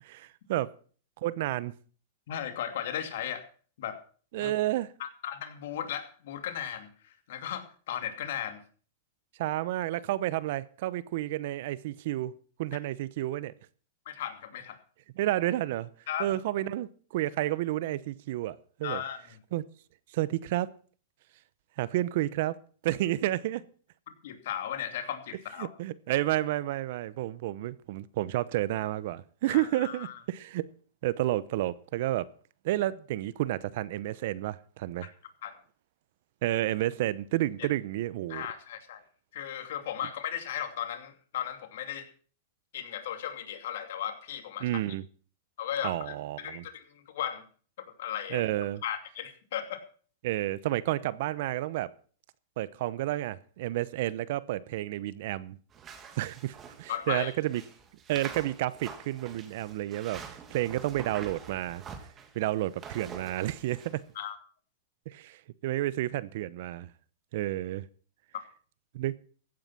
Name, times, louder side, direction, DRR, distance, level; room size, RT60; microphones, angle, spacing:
voice 1, 0.0-0.7 1.2-1.7 4.3-4.9 9.4-12.3 12.6-13.5 15.2-15.9 16.2-19.0 19.5-19.6 20.1-20.7 21.8-22.6 22.8-23.6 25.6-30.7 31.0-32.3 32.6-35.1 36.4-38.4 44.6-45.0 45.8-46.6 48.3-48.8 50.2-51.9 52.6-55.6 56.2-57.6 58.1-60.2 60.5-61.8 62.3-64.0 65.1-66.9 67.3-67.9 68.9-69.2, right 15 dB, 60° right, 0.8 m, -31 dB
voice 2, 2.3-3.4 3.8-4.0 4.4-4.5 5.0-8.6 14.1-14.8 16.1-16.3 18.8-19.4 24.2-25.7 29.5-30.2 35.0-35.1 35.4-35.6 37.6-37.7 38.3-39.0 39.3-42.1 42.7-44.8 45.6-47.4 47.8-48.5 48.8-49.8 56.9-57.3 64.1-64.4, left 10 dB, 70° left, 2.7 m, -36 dB
sound 1, 55.7-64.0, right 6 dB, 25° right, 2.1 m, -46 dB
15.5 x 8.9 x 6.0 m
hypercardioid pair, 135°, 0 cm